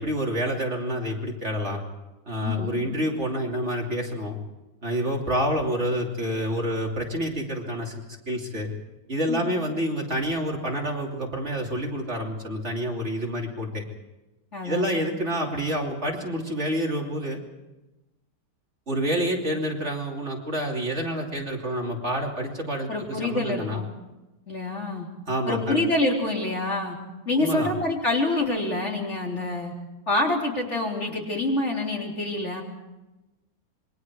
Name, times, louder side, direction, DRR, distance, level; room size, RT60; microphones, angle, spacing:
voice 1, 0.0-1.8 2.3-4.4 4.8-7.9 8.3-8.7 9.1-13.8 14.6-17.4 18.9-23.8 25.3-25.8 27.4-27.7, equal, 40° right, -1 dB, 3.2 m, -28 dB
voice 2, 2.4-2.8 9.3-9.6 14.5-15.0 22.9-23.9 24.5-25.1 25.5-27.0 27.3-29.7 30.1-32.6, left 2 dB, 40° left, -1 dB, 4.1 m, -26 dB
27.5 x 23.0 x 4.8 m, 1.0 s
omnidirectional pair, 1.8 m